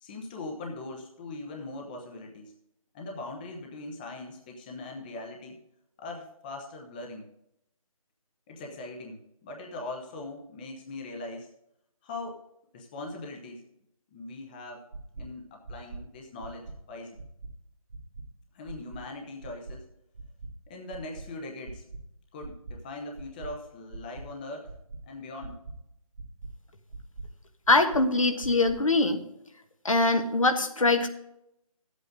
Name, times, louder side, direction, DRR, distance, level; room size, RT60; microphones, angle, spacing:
voice 1, 0.0-2.6 2.9-5.6 6.0-7.3 8.5-11.5 12.0-12.4 12.7-13.6 14.1-14.8 15.2-17.2 18.5-19.9 20.7-21.8 22.3-24.7 25.1-25.6, left 2 dB, 15° left, 1 dB, 0.9 m, -40 dB
sound 1, 14.9-15.2 15.7-16.0 16.4-16.7 17.2-17.5 17.9-18.2 18.7-19.0 19.4-19.7 20.2-20.5 20.9-21.2 21.6-22.0 22.4-22.7 23.2-23.5 23.9-24.2 24.7-25.0 25.4-25.7 26.2-26.5 26.9-27.3 27.7-28.0 28.4-28.8, right 3 dB, 55° right, 1.8 m, -41 dB
voice 2, 27.7-29.2 29.8-31.1, left 2 dB, 65° left, 6 dB, 1.4 m, -23 dB
12.5 x 8.3 x 3.8 m, 0.80 s
figure-of-eight pair, 155°, 18 cm